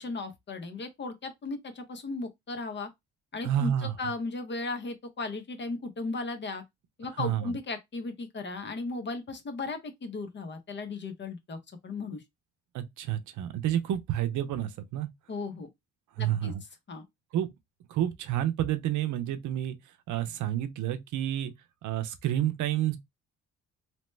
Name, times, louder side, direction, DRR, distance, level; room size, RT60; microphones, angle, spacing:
voice 1, 0.0-2.9 3.3-6.6 7.0-12.2 15.3-15.7 16.2-16.5 16.9-17.0, left 3 dB, 35° left, 0.8 m, -36 dB
voice 2, 3.4-3.9 7.2-7.5 12.7-15.1 16.2-16.6 17.3-17.5 17.9-19.8 20.1-21.5 21.8-23.0, right 11 dB, 75° right, 0.6 m, -29 dB
2.9 x 2.1 x 3.2 m
cardioid pair, 90°, 30 cm